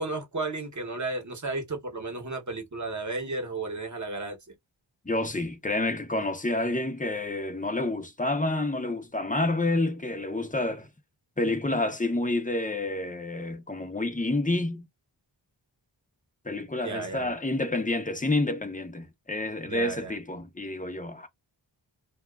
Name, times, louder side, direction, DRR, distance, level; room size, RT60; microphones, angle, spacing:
voice 1, 0.0-4.4 16.8-17.4 19.7-20.2, right 3 dB, 40° right, 0.9 m, -33 dB
voice 2, 5.0-10.9 11.4-14.9 16.4-21.3, left 2 dB, 15° left, 0.6 m, -29 dB
2.8 x 2.3 x 2.3 m
wide cardioid pair, 65°, 46 cm